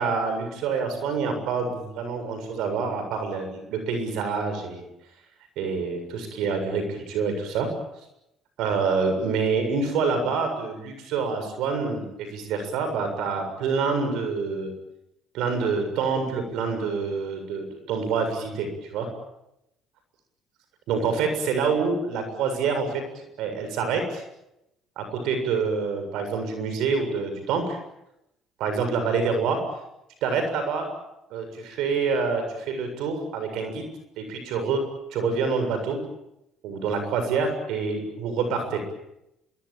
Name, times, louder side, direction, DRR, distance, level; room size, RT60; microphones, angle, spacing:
voice 1, 0.0-4.8 5.6-7.7 8.6-14.7 15.3-19.1 20.9-23.0 23.4-24.2 25.0-27.8 28.6-29.6 30.2-30.9 31.3-33.9 34.2-34.8 35.1-36.0 36.6-38.8, right 5 dB, 70° right, 7 dB, 7.2 m, -27 dB
26.5 x 23.0 x 8.8 m, 0.87 s
supercardioid pair, 65°, 0 cm